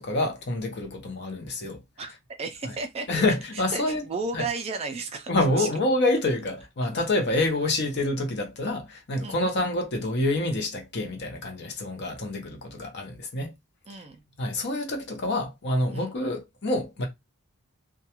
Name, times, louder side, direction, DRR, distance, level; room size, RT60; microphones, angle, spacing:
voice 1, 0.0-1.8 3.1-4.0 4.3-4.5 5.3-13.5 14.4-17.1, left 2 dB, 50° left, 0.7 m, -27 dB
voice 2, 2.4-3.2 3.5-5.3 5.6-5.7 9.2-9.5 13.9-14.2 15.9-16.2, right 3 dB, 25° right, 0.3 m, -33 dB
2.3 x 2.2 x 2.8 m
head